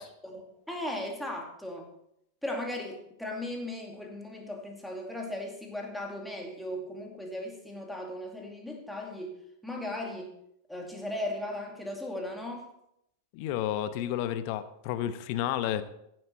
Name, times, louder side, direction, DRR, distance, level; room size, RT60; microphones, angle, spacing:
voice 1, 0.0-1.9 2.4-9.3 9.6-10.3 10.7-12.7, left 1 dB, ahead, 1 dB, 2.4 m, -37 dB
voice 2, 13.3-15.8, left 11 dB, 45° left, 12 dB, 0.9 m, -31 dB
15.5 x 7.7 x 4.5 m, 0.77 s
figure-of-eight pair, 90°, 0 cm